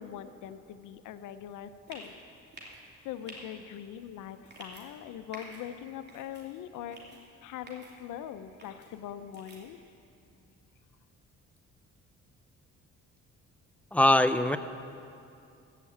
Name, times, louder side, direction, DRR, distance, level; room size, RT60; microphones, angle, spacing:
voice 1, 0.0-2.1 2.6-2.7 3.0-7.0 7.4-9.8, left 10 dB, 85° left, 11 dB, 0.7 m, -42 dB
sound 1, 1.9-2.1 2.5-2.8 3.3-3.4 4.4-4.8 5.3-5.6 6.1-6.4 6.9-7.2 7.7-7.9 8.6-8.9 9.3-9.6, right 2 dB, 35° right, 2.8 m, -48 dB
voice 2, 13.9-14.6, left 1 dB, 5° left, 11 dB, 0.5 m, -22 dB
15.5 x 5.9 x 8.4 m, 2.6 s
cardioid pair, 90°, 30 cm